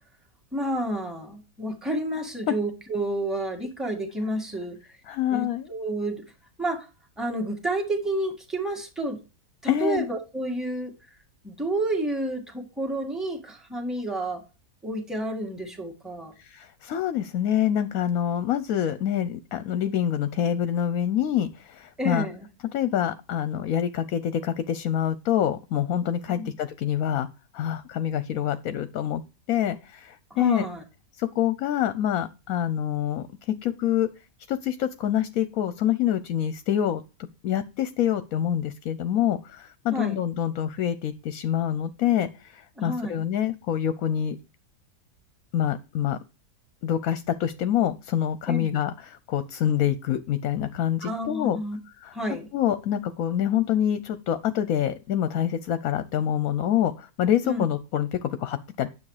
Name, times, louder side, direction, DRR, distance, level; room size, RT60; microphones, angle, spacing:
voice 1, 0.5-4.8 5.3-6.2 6.6-6.9 7.2-9.2 9.6-10.9 11.4-14.4 14.8-16.3 22.0-22.5 26.3-26.5 30.3-30.8 39.9-40.2 42.8-43.2 48.5-48.7 51.0-51.8 52.1-52.5 57.4-57.7, right 1 dB, ahead, 2 dB, 1.9 m, -30 dB
voice 2, 5.1-5.7 9.7-10.0 16.4-22.3 22.7-27.3 27.5-29.2 29.5-30.7 31.2-34.1 34.5-37.0 37.4-44.4 45.5-46.2 46.8-51.6 52.0-52.1 52.5-58.9, left 10 dB, 65° left, 12 dB, 1.0 m, -26 dB
9.7 x 7.1 x 4.9 m, 0.30 s
omnidirectional pair, 1.7 m